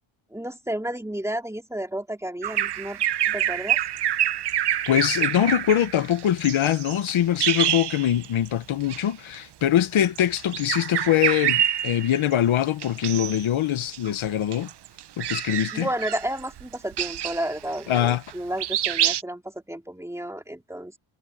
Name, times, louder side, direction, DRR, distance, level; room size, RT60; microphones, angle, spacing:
voice 1, 0.3-3.8 15.7-21.0, right 1 dB, 5° right, 3.0 m, -32 dB
Bird vocalization bird call bird song, 2.4-8.5 8.8-9.0 10.1-12.3 12.8-13.5 13.8-18.3 18.6-19.2, right 11 dB, 55° right, 0.8 m, -27 dB
voice 2, 4.9-14.7 15.2-15.9 17.9-18.2, left 11 dB, 80° left, 1.3 m, -23 dB
wide cardioid pair, 140°, 47 cm